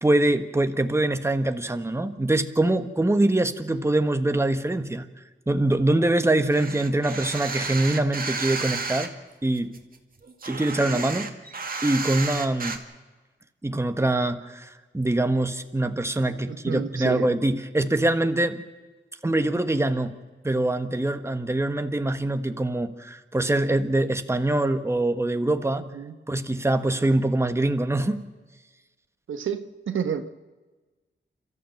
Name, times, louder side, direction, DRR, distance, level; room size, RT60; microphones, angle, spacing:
voice 1, 0.0-5.0 5.5-9.1 9.4-9.7 10.5-11.3 11.8-12.8 13.6-18.6 19.2-20.1 20.4-25.9 26.3-28.2, right 2 dB, 15° right, 8 dB, 1.3 m, -24 dB
sound 1, 6.5-9.1 9.6-12.8, right 4 dB, 45° right, 2.0 m, -32 dB
voice 2, 16.5-17.3 25.9-26.1 29.3-30.3, right 7 dB, 90° right, 9 dB, 1.2 m, -30 dB
29.0 x 13.5 x 7.7 m, 1.2 s
cardioid pair, 85°, 20 cm